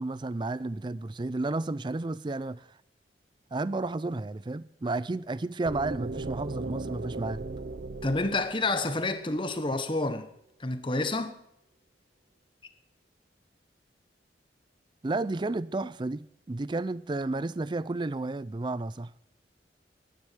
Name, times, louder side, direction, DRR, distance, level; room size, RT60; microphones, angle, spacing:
voice 1, 0.0-2.7 3.5-7.5 15.0-19.1, right 2 dB, 25° right, 0.4 m, -32 dB
sound 1, 5.6-9.5, right 3 dB, 60° right, 0.7 m, -37 dB
voice 2, 8.0-10.3 10.6-11.4, left 2 dB, 30° left, 1.1 m, -29 dB
10.5 x 9.7 x 9.1 m
head